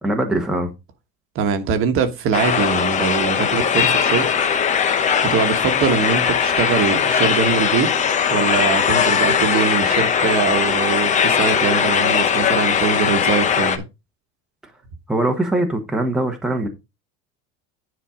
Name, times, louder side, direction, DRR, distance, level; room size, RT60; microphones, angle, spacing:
voice 1, 0.0-0.7 15.1-16.7, right 1 dB, ahead, 1.2 m, -21 dB
voice 2, 1.3-4.3 5.2-7.9 8.3-13.8, right 6 dB, 40° right, 1.3 m, -22 dB
sound 1, 2.3-13.8, left 7 dB, 25° left, 0.8 m, -19 dB
10.0 x 4.3 x 5.0 m
cardioid pair, 165°, 31 cm